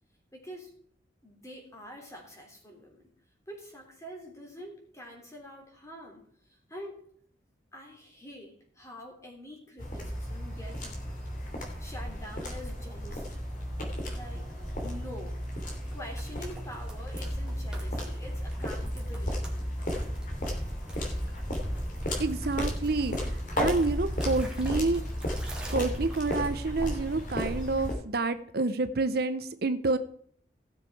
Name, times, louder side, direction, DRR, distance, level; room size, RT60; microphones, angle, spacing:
voice 1, 0.3-0.7 1.2-3.1 3.5-7.0 7.7-11.0 11.6-13.4 14.1-14.5 14.8-15.4 15.9-19.6, equal, 15° left, 1 dB, 3.1 m, -46 dB
sound 1, 9.8-27.9, equal, 45° left, 3.2 m, -34 dB
sound 2, 14.8-26.8, right 1 dB, 5° right, 2.3 m, -50 dB
voice 2, 22.2-25.0 25.7-30.0, right 3 dB, 60° right, 11 dB, 0.7 m, -28 dB
16.5 x 7.1 x 4.7 m, 0.62 s
head